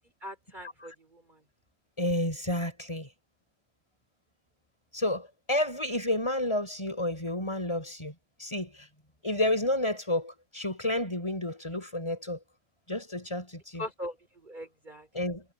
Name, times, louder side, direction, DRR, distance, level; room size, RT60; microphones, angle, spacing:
voice 1, 0.2-1.2 13.8-14.2 14.4-15.1, left 1 dB, 30° right, 5.0 m, -40 dB
voice 2, 2.0-3.1 4.9-8.1 8.4-8.9 9.2-12.4 12.9-13.8 15.1-15.4, left 1 dB, 20° left, 7.1 m, -30 dB
omnidirectional pair, 1.6 m